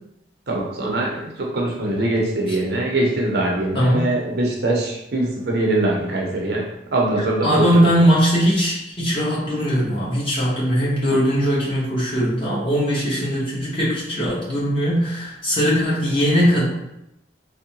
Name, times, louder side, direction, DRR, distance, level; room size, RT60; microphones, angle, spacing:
voice 1, 0.5-6.7 6.9-7.9, right 2 dB, 60° right, -1 dB, 0.6 m, -22 dB
voice 2, 7.4-16.7, equal, 30° left, -7 dB, 1.0 m, -20 dB
3.5 x 2.1 x 2.8 m, 0.84 s
head